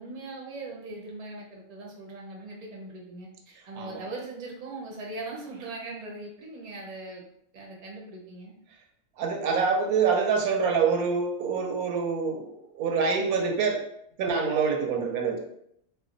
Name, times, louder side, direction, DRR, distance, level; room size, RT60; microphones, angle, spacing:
voice 1, 0.0-7.2 7.5-8.5, right 2 dB, 40° right, -2 dB, 0.7 m, -40 dB
voice 2, 9.2-13.8 14.2-15.4, right 5 dB, 85° right, 3 dB, 1.1 m, -26 dB
3.2 x 2.1 x 3.7 m, 0.73 s
omnidirectional pair, 1.5 m